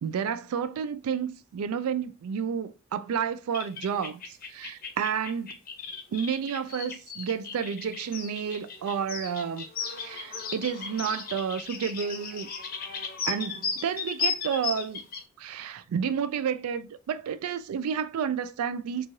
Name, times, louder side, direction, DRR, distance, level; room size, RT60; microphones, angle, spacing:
voice 1, 0.0-5.6 6.1-9.7 10.0-12.5 13.3-15.0 15.4-19.1, right 7 dB, 85° right, 0.3 m, -31 dB
sound 1, 3.5-15.2, left 5 dB, 45° left, 0.6 m, -35 dB
3.1 x 2.3 x 2.6 m
head